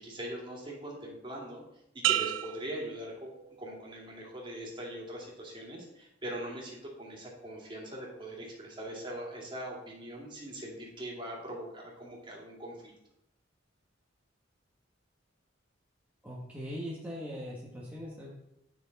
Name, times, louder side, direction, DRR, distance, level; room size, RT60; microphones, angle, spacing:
voice 1, 0.0-1.6 1.9-12.9, right 1 dB, 25° right, -2 dB, 2.5 m, -41 dB
sound 1, 2.0-3.8 4.3-4.8, right 12 dB, 75° right, 0.4 m, -33 dB
voice 2, 16.2-18.3, equal, 10° right, -6 dB, 1.4 m, -40 dB
10.0 x 6.3 x 4.1 m, 0.83 s
head